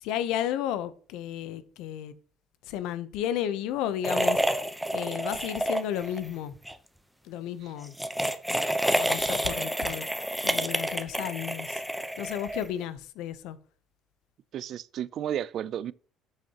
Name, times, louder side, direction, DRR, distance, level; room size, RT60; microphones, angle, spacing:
voice 1, 0.0-2.1 2.7-4.6 4.9-6.5 7.2-7.9 9.0-10.1 10.4-11.8 12.2-13.6, left 10 dB, 80° left, 0.7 m, -33 dB
sound 1, 4.0-6.2 6.5-6.7 7.8-12.8, right 1 dB, ahead, 0.8 m, -29 dB
voice 2, 14.5-15.9, right 10 dB, 60° right, 0.4 m, -33 dB
10.0 x 6.6 x 2.9 m
supercardioid pair, 95°, 0 cm